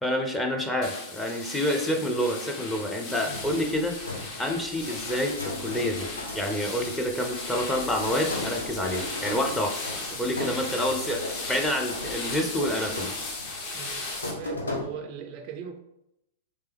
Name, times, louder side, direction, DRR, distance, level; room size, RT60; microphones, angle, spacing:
voice 1, 0.0-4.0 4.4-6.1 6.3-9.8 10.2-11.2 11.5-13.1, equal, 5° left, 0.6 m, -28 dB
sound 1, 0.8-14.3, left 3 dB, 40° left, 1.0 m, -36 dB
sound 2, 3.3-14.8, left 2 dB, 80° left, 1.0 m, -38 dB
voice 2, 10.1-10.5 12.3-12.6 13.7-15.8, right 7 dB, 40° right, 0.3 m, -41 dB
3.3 x 3.3 x 3.4 m
figure-of-eight pair, 100°, 0 cm